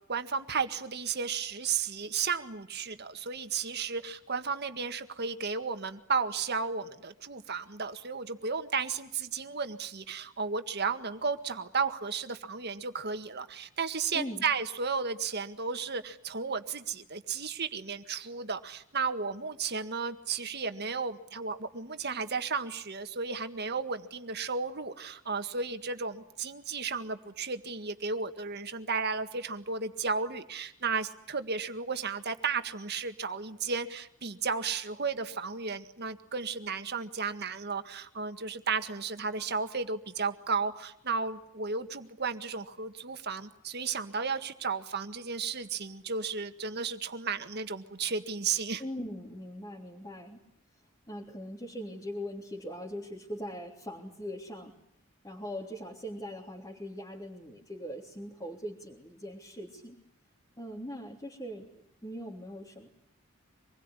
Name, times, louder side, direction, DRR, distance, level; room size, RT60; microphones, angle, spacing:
voice 1, 0.1-48.8, right 5 dB, 50° right, 8 dB, 1.8 m, -34 dB
voice 2, 14.1-14.4 48.8-50.4 51.1-54.7 55.2-60.0 60.6-62.9, equal, 20° left, -2 dB, 3.3 m, -41 dB
26.0 x 21.0 x 9.9 m, 0.73 s
head